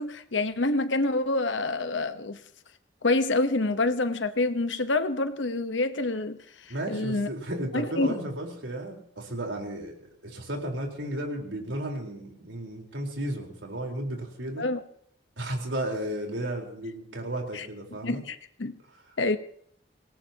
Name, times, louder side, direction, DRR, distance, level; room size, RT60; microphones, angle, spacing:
voice 1, 0.0-2.4 3.0-7.3 7.7-8.1 14.6-14.8 17.5-17.7 18.0-18.8 19.2-19.4, left 2 dB, 90° left, 1.1 m, -27 dB
voice 2, 6.7-14.7 15.4-18.2, right 1 dB, 90° right, 4.3 m, -34 dB
25.5 x 18.5 x 2.9 m
head